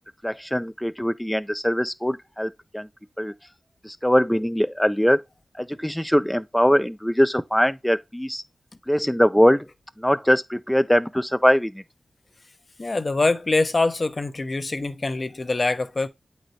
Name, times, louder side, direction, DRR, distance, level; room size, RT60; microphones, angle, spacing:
voice 1, 0.2-2.9 3.2-3.3 3.8-5.2 5.6-8.4 8.9-9.7 10.0-11.8, equal, 5° left, 0.3 m, -21 dB
voice 2, 12.8-16.1, left 2 dB, 50° left, 0.6 m, -24 dB
7.8 x 4.1 x 3.1 m
cardioid pair, 55°, 0 cm